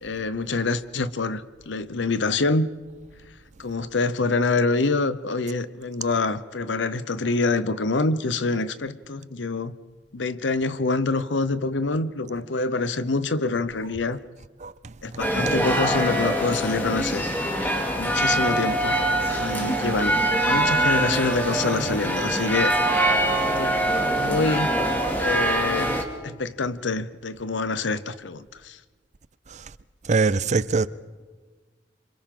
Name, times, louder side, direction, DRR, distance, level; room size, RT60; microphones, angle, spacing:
voice 1, 0.0-2.7 3.6-9.7 10.1-14.2 15.0-17.3 17.9-19.0 19.3-22.7 23.6-23.8 24.2-24.7 25.2-25.9 26.2-28.8, left 3 dB, 80° left, 0.8 m, -26 dB
sound 1, 15.2-26.0, right 1 dB, 10° left, 2.4 m, -23 dB
voice 2, 30.1-30.9, right 4 dB, 40° right, 0.5 m, -22 dB
28.0 x 26.0 x 3.8 m
head